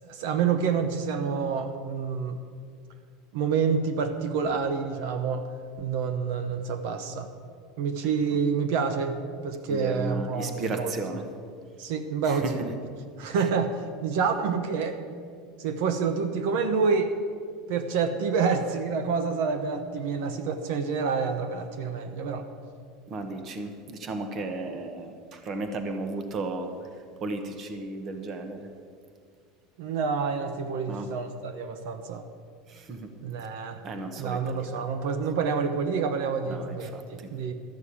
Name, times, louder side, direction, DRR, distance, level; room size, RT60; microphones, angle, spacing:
voice 1, 0.0-2.4 3.3-5.5 5.8-7.3 7.8-9.1 9.4-10.9 11.8-12.4 13.2-15.0 15.6-17.1 17.7-22.5 29.8-32.2 33.2-33.8 34.2-37.5, right 5 dB, 65° right, 8 dB, 0.9 m, -28 dB
voice 2, 9.7-11.3 12.2-12.7 13.4-13.5 23.1-28.7 30.9-31.1 32.7-33.2 33.8-35.1 36.4-37.3, right 2 dB, 30° right, 6 dB, 1.0 m, -35 dB
13.0 x 6.4 x 8.5 m, 2.1 s
supercardioid pair, 165°, 0 cm